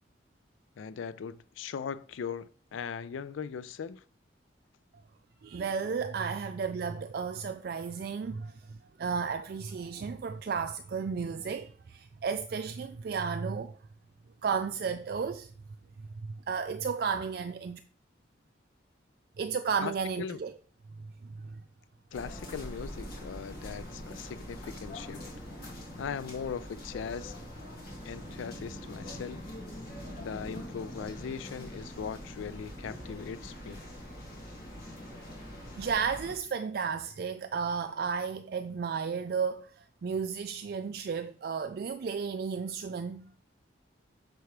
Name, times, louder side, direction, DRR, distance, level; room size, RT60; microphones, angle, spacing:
voice 1, 0.8-4.0 19.8-19.9 20.2-20.4 22.1-25.2 26.0-27.3 28.0-29.5 30.2-33.8, left 6 dB, 90° left, 0.4 m, -39 dB
voice 2, 5.4-13.8 14.4-15.5 16.2-17.8 19.4-20.5 21.4-21.6 35.8-43.3, right 6 dB, 50° right, 0.3 m, -33 dB
sound 1, 22.1-36.3, equal, 50° left, 2.1 m, -43 dB
6.9 x 5.8 x 3.2 m
head